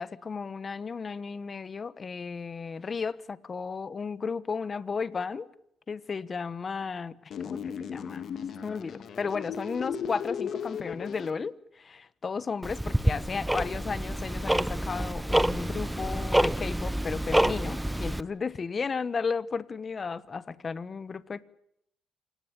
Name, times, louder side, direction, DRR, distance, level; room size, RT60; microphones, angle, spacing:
voice 1, 0.0-5.5 5.9-7.2 7.4-8.2 8.6-21.4, left 5 dB, 40° left, 1.2 m, -34 dB
sound 1, 7.3-11.3, left 7 dB, 65° left, 2.2 m, -36 dB
Tick-tock, 12.6-18.2, right 1 dB, 5° right, 1.0 m, -27 dB
27.5 x 18.5 x 8.8 m
cardioid pair, 90°, 0 cm